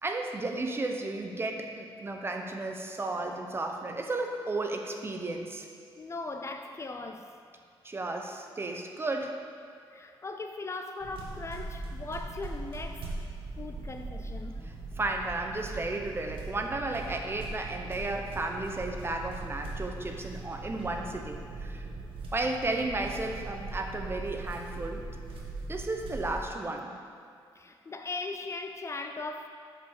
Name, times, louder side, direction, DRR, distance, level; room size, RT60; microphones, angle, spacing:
voice 1, 0.0-5.7 7.8-9.4 14.6-21.9 22.3-25.1 25.7-26.9, right 2 dB, 25° right, 3 dB, 0.9 m, -33 dB
voice 2, 6.0-7.3 9.9-13.1 13.6-14.7 27.6-29.5, left 3 dB, 30° left, 5 dB, 0.5 m, -39 dB
sound 1, 11.0-26.4, right 2 dB, 75° right, 1.6 m, -40 dB
7.6 x 5.3 x 6.7 m, 2.2 s
cardioid pair, 95°, 9 cm